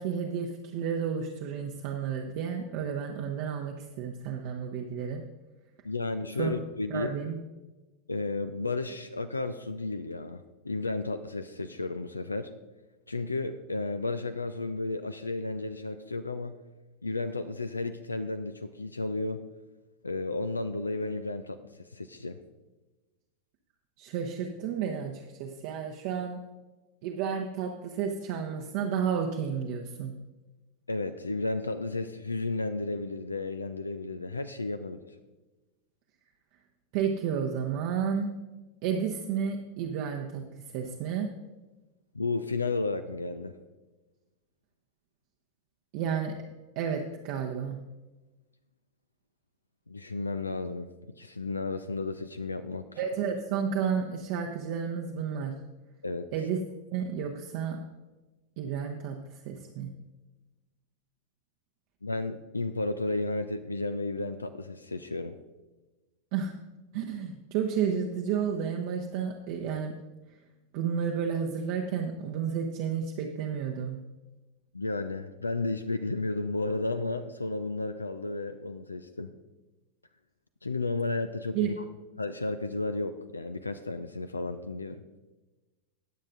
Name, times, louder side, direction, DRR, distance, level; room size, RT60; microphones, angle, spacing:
voice 1, 0.0-5.2 6.4-6.5 6.9-7.4 24.0-26.4 27.0-30.1 36.9-38.3 38.8-41.3 45.9-46.4 46.8-47.8 53.0-55.6 56.3-56.6 56.9-57.8 58.6-59.9 66.3-66.5 66.9-70.0 70.7-74.0 81.5-81.7, right 7 dB, 45° right, 1 dB, 0.8 m, -31 dB
voice 2, 5.8-7.1 8.1-12.5 13.1-16.6 17.0-19.4 20.0-22.4 30.9-35.0 42.1-43.6 49.9-50.9 51.2-52.9 56.0-56.3 62.0-65.4 74.7-79.3 80.6-81.7 82.2-85.0, left 3 dB, 80° left, 11 dB, 0.4 m, -33 dB
19.5 x 7.5 x 2.5 m, 1.1 s
figure-of-eight pair, 90°, 0 cm